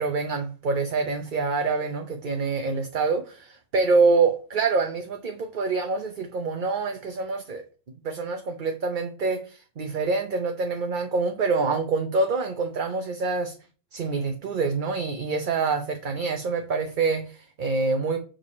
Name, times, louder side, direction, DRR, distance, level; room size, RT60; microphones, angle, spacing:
voice 1, 0.0-7.6 8.0-13.5 13.9-18.2, right 4 dB, 45° right, 0.8 m, -26 dB
6.7 x 5.1 x 4.1 m
omnidirectional pair, 1.3 m